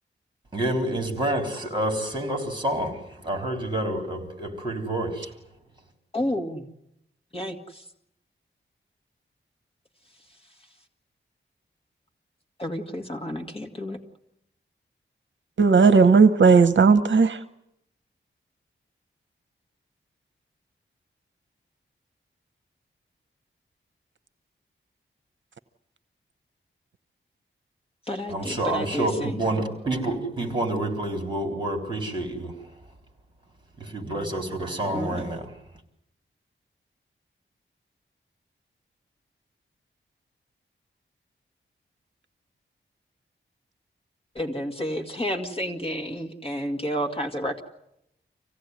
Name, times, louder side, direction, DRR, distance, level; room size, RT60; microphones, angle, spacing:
voice 1, 0.5-5.3 28.3-32.7 33.8-35.6, right 1 dB, 25° right, 3.9 m, -28 dB
voice 2, 6.1-6.7 7.3-7.8 12.6-14.0 28.1-29.4 34.9-35.2 44.4-47.6, equal, 30° left, 2.0 m, -30 dB
voice 3, 15.6-17.4, right 5 dB, 65° right, 0.8 m, -16 dB
25.5 x 16.5 x 9.6 m
wide cardioid pair, 140°, 21 cm